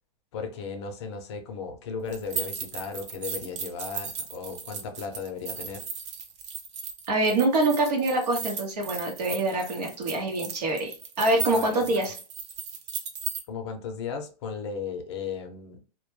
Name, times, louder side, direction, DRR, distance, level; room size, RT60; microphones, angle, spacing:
voice 1, 0.3-5.8 11.5-12.0 13.5-15.8, left 5 dB, 45° left, 0.5 m, -36 dB
sound 1, 2.1-13.4, right 6 dB, 45° right, 0.5 m, -36 dB
voice 2, 7.1-12.1, right 2 dB, 75° right, 0.8 m, -25 dB
2.1 x 2.1 x 3.0 m
hypercardioid pair, 160°, 21 cm